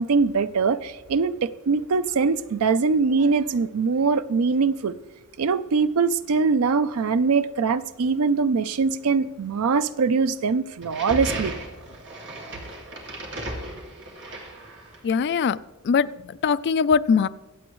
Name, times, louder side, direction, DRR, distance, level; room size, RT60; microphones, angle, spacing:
voice 1, 0.0-4.9 5.4-11.5, right 4 dB, 75° right, 0.5 m, -22 dB
sound 1, 10.8-15.1, right 1 dB, 55° right, 2.4 m, -35 dB
voice 2, 15.0-15.6 15.8-17.3, left 6 dB, 50° left, 0.4 m, -21 dB
23.5 x 7.8 x 3.1 m
head